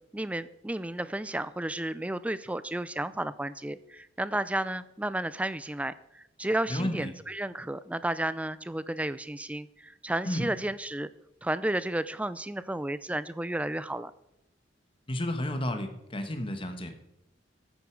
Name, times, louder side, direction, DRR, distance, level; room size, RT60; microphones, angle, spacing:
voice 1, 0.1-11.1 11.4-14.1, right 1 dB, 5° right, 15 dB, 0.4 m, -32 dB
voice 2, 6.7-7.1 10.2-10.5 15.1-16.9, left 1 dB, 30° left, 6 dB, 1.3 m, -31 dB
13.5 x 9.3 x 4.7 m, 0.85 s
head